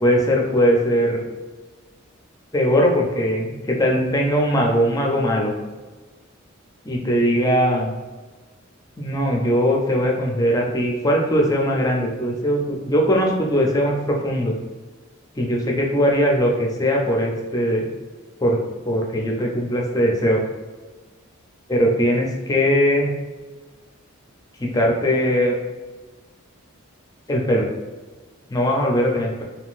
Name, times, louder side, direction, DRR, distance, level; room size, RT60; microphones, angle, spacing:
voice 1, 0.0-1.3 2.5-5.5 6.8-7.9 9.0-14.5 15.4-17.9 18.4-18.6 18.9-20.4 21.7-23.1 24.6-25.6 27.3-27.7 28.5-29.4, equal, 15° left, 0 dB, 0.5 m, -20 dB
3.6 x 2.7 x 2.5 m, 1.3 s
head